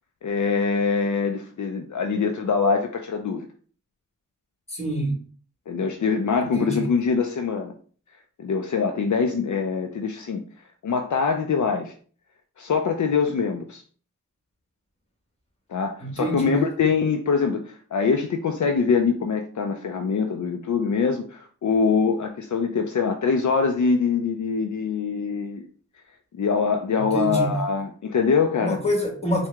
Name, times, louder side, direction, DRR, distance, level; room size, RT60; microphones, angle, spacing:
voice 1, 0.2-3.5 5.7-7.7 8.4-10.4 10.8-11.9 12.6-13.8 15.7-25.7 26.4-28.8, left 5 dB, 65° left, 5 dB, 0.5 m, -24 dB
voice 2, 4.7-5.1 6.5-6.9 16.0-16.6 27.0-27.5 28.6-29.5, right 1 dB, 20° left, 0 dB, 1.6 m, -26 dB
4.6 x 2.2 x 3.5 m, 0.43 s
cardioid pair, 50°, 32 cm